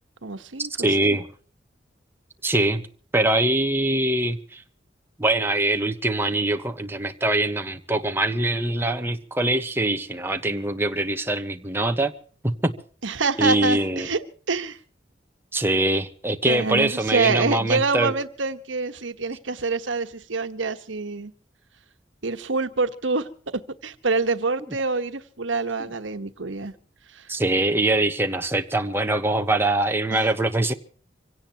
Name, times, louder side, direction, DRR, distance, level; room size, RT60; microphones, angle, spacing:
voice 1, 0.2-1.2 13.0-14.8 16.4-21.3 22.2-26.8 27.1-27.3 30.1-30.3, right 4 dB, 90° right, 9 dB, 1.3 m, -26 dB
voice 2, 0.8-1.3 2.4-2.8 3.1-4.6 5.2-12.1 12.4-12.7 13.4-14.1 15.5-18.1 27.3-30.7, right 2 dB, 10° right, 6 dB, 1.2 m, -23 dB
25.5 x 17.5 x 2.9 m, 0.42 s
head